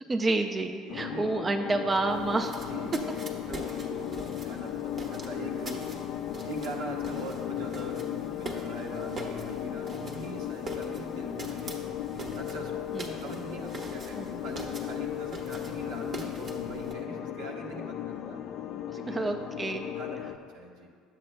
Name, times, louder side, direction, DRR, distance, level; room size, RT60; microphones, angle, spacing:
voice 1, 0.1-2.6 12.9-13.2 14.1-14.3 18.9-19.9, right 2 dB, 25° right, 4 dB, 0.4 m, -29 dB
voice 2, 0.8-1.3 2.7-2.9 3.5-5.8 6.4-11.8 12.1-18.4 18.9-19.4 20.0-20.9, right 2 dB, 80° right, -1 dB, 1.1 m, -42 dB
sound 1, 0.9-20.4, left 11 dB, 60° left, 0.3 m, -36 dB
sound 2, 2.1-16.9, right 2 dB, 45° right, 1.2 m, -44 dB
11.0 x 7.6 x 2.2 m, 2.1 s
supercardioid pair, 80°, 0 cm